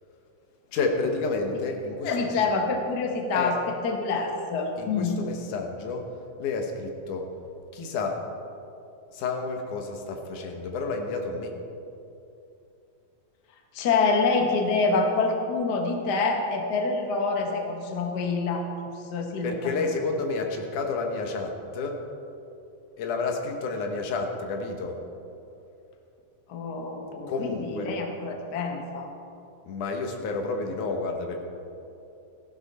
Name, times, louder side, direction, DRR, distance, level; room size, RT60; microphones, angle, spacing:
voice 1, 0.7-2.4 3.3-3.5 4.8-6.0 6.4-7.3 7.7-8.2 9.1-11.5 19.4-22.0 23.0-25.0 27.3-27.9 29.7-31.4, left 3 dB, 85° left, 3 dB, 2.7 m, -30 dB
voice 2, 2.0-5.1 13.7-18.7 19.1-19.7 26.5-29.1, left 4 dB, 50° left, 3 dB, 1.2 m, -26 dB
15.0 x 11.5 x 4.2 m, 2.7 s
omnidirectional pair, 3.5 m